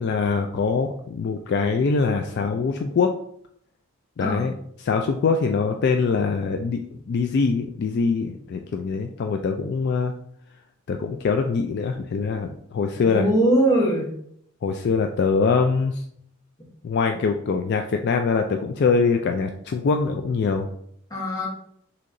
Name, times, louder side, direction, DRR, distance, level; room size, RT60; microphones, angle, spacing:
voice 1, 0.0-3.1 4.2-10.1 10.9-13.3 14.6-16.0 16.8-20.7, left 4 dB, 50° left, 5 dB, 0.3 m, -23 dB
voice 2, 13.0-14.1 21.1-21.5, right 1 dB, 15° left, -3 dB, 1.1 m, -21 dB
6.3 x 2.9 x 2.6 m, 0.68 s
head